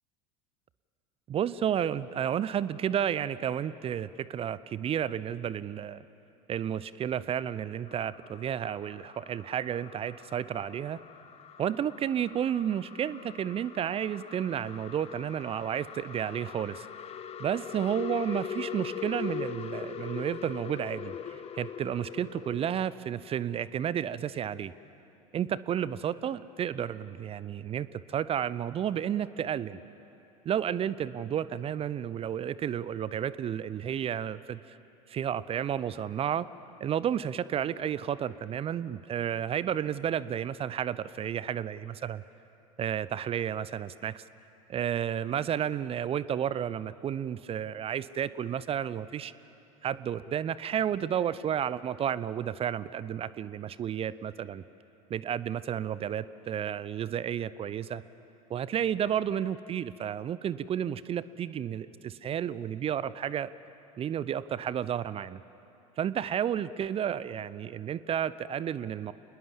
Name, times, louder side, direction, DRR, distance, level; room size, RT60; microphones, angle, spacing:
voice 1, 1.3-6.0 6.5-11.0 11.6-16.8 17.4-24.7 25.3-29.8 30.4-34.8 35.1-36.5 36.8-42.2 42.8-44.2 44.7-49.3 49.8-54.6 55.1-58.0 58.5-63.5 64.0-65.4 66.0-69.1, right 9 dB, 30° right, 18 dB, 0.6 m, -32 dB
sound 1, 7.9-23.0, left 8 dB, 35° left, 1.2 m, -42 dB
28.0 x 20.5 x 7.4 m, 2.9 s
figure-of-eight pair, 75°, 19 cm